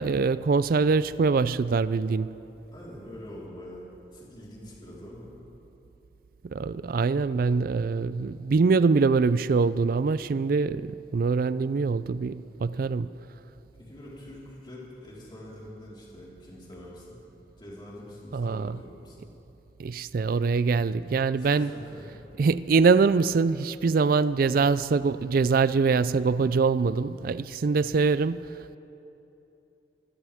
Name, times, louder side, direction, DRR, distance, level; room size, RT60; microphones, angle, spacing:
voice 1, 0.0-2.3 6.4-13.1 18.3-18.7 19.8-21.7 22.4-28.8, right 4 dB, 50° right, 0.4 m, -24 dB
voice 2, 2.7-3.9 4.1-5.4 13.8-17.2 17.6-19.3 21.4-22.1, left 1 dB, 25° left, 4.2 m, -44 dB
25.5 x 16.0 x 3.6 m
head